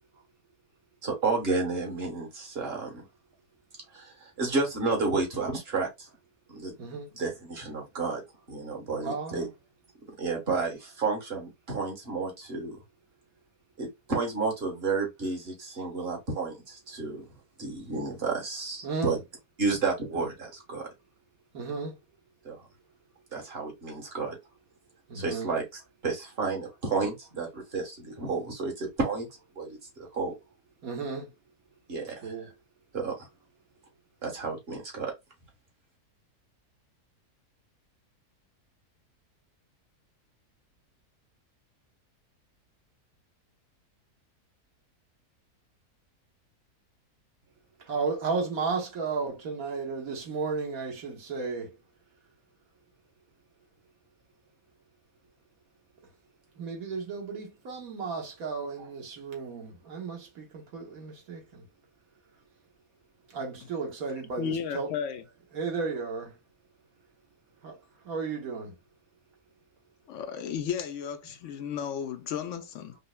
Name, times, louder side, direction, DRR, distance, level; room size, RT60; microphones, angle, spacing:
voice 1, 1.0-3.0 3.9-6.1 6.5-6.7 7.1-8.2 8.5-9.5 10.2-12.8 13.8-17.2 17.6-19.2 19.6-20.9 22.4-22.6 23.3-24.4 25.1-25.6 26.0-29.3 29.6-30.3 31.9-32.3 32.9-33.2 34.2-35.1, right 4 dB, 40° right, 1.5 m, -31 dB
voice 2, 6.8-7.1 9.0-9.5 18.8-19.2 21.5-22.0 25.1-25.5 30.8-31.3 32.2-32.5 47.8-51.7 56.6-61.6 63.3-64.9 65.5-66.3 67.6-67.8 68.0-68.7, right 4 dB, 65° right, 1.5 m, -34 dB
voice 3, 64.4-65.2 70.1-73.0, left 7 dB, 70° left, 0.7 m, -34 dB
5.3 x 2.1 x 2.2 m
omnidirectional pair, 1.6 m